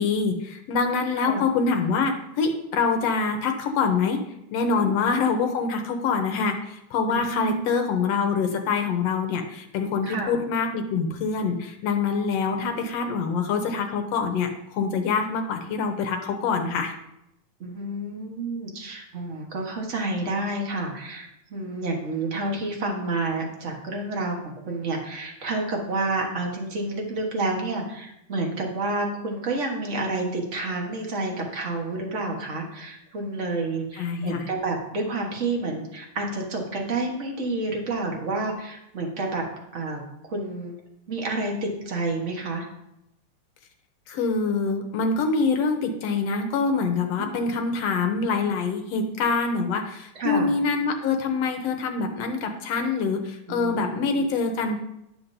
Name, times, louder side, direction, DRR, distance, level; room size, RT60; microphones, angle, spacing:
voice 1, 0.0-4.2 4.5-16.9 33.9-34.5 44.1-54.8, left 4 dB, 70° left, 5 dB, 1.7 m, -25 dB
voice 2, 7.1-7.6 10.0-10.4 12.6-12.8 17.6-39.4 39.7-40.7 41.1-42.6 47.2-47.5 50.1-50.5 53.5-54.3, right 2 dB, 75° right, 0 dB, 0.6 m, -29 dB
11.0 x 7.5 x 2.7 m, 0.84 s
omnidirectional pair, 3.5 m